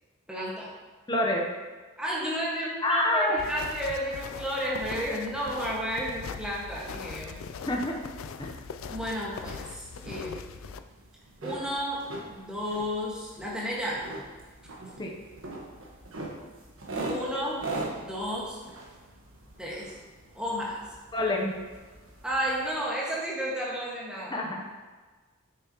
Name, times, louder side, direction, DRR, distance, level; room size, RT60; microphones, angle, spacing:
voice 1, 0.3-0.7 2.0-7.4 8.9-10.4 11.4-14.1 17.1-17.7 17.9-18.6 19.6-20.0 20.3-20.8 22.2-24.5, equal, 5° right, -5 dB, 1.6 m, -32 dB
voice 2, 1.1-1.5 2.8-3.4 7.7-8.1 8.4-8.5 15.0-15.1 21.1-21.5 24.3-24.6, left 1 dB, 20° left, 0 dB, 0.8 m, -27 dB
sound 1, 3.4-10.8, left 5 dB, 75° left, 0.4 m, -41 dB
sound 2, 6.3-22.8, right 2 dB, 75° right, 1.4 m, -42 dB
9.4 x 6.8 x 3.0 m, 1.4 s
head